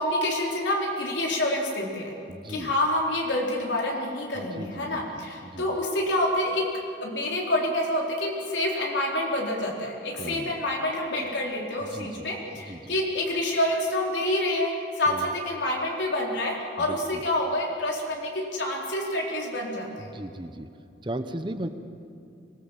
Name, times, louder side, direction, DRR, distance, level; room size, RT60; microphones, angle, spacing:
voice 1, 0.0-2.1 2.5-6.7 7.0-20.1, left 1 dB, 75° left, -1 dB, 4.2 m, -27 dB
voice 2, 2.3-2.7 4.5-5.7 10.2-10.6 11.9-12.3 12.7-12.9 15.1-15.3 16.8-17.2 20.0-20.7 21.0-21.7, right 1 dB, 25° right, 9 dB, 0.9 m, -37 dB
24.5 x 19.0 x 7.4 m, 2.6 s
head